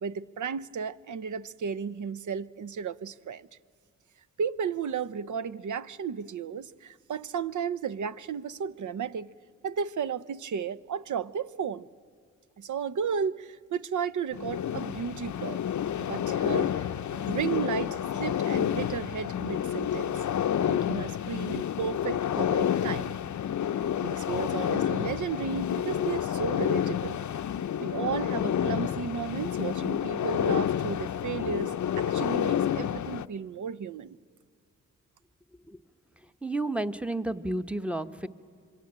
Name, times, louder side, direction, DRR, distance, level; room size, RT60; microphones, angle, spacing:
voice 1, 0.0-3.5 4.4-9.3 9.6-11.9 12.6-15.6 16.0-20.2 20.7-23.3 24.0-27.2 27.8-34.2, right 7 dB, 65° right, 0.7 m, -34 dB
sound 1, 14.3-33.3, left 9 dB, 65° left, 0.6 m, -29 dB
voice 2, 36.2-38.3, right 2 dB, 5° right, 1.0 m, -32 dB
26.0 x 23.0 x 8.7 m
cardioid pair, 70°, 32 cm